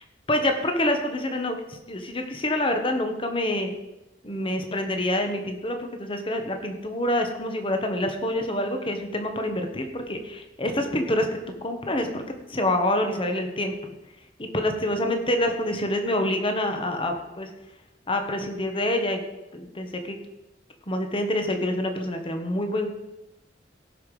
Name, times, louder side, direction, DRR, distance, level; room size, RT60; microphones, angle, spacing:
voice 1, 0.3-3.7 4.2-12.2 12.5-13.7 14.4-17.5 18.1-19.2 19.5-20.2 20.9-22.9, left 1 dB, 30° left, 5 dB, 1.4 m, -26 dB
17.5 x 5.8 x 5.0 m, 0.97 s
head